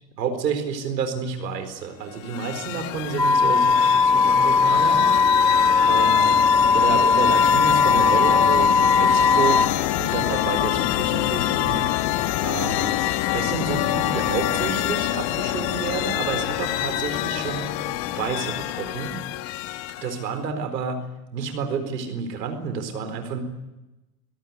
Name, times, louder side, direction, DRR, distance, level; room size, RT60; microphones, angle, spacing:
voice 1, 0.2-5.0 5.8-6.4 6.7-9.6 10.0-12.1 12.4-13.0 13.3-17.8 18.1-19.2 20.0-21.0 21.3-23.4, right 6 dB, 85° right, 8 dB, 4.4 m, -30 dB
sound 1, 2.1-20.3, left 15 dB, 65° left, 1.6 m, -26 dB
sound 2, 3.2-9.7, left 4 dB, 5° left, 2.2 m, -18 dB
25.5 x 17.5 x 8.2 m, 1.0 s
hypercardioid pair, 75°, 48 cm